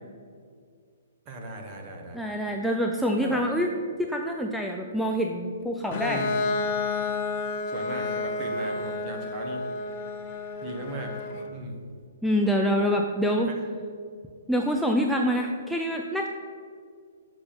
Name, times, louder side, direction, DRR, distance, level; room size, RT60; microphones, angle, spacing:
voice 1, 1.2-2.2 3.2-3.4 6.1-6.4 7.7-9.7 10.6-11.1 11.5-11.8 13.5-13.6, right 2 dB, 30° right, 2 dB, 1.3 m, -37 dB
voice 2, 2.1-3.7 4.0-6.2 12.2-13.5 14.5-16.3, equal, ahead, 0 dB, 0.4 m, -26 dB
Bowed string instrument, 5.9-11.5, left 3 dB, 35° left, 0.8 m, -30 dB
6.6 x 6.0 x 7.0 m, 2.2 s
hypercardioid pair, 155°, 0 cm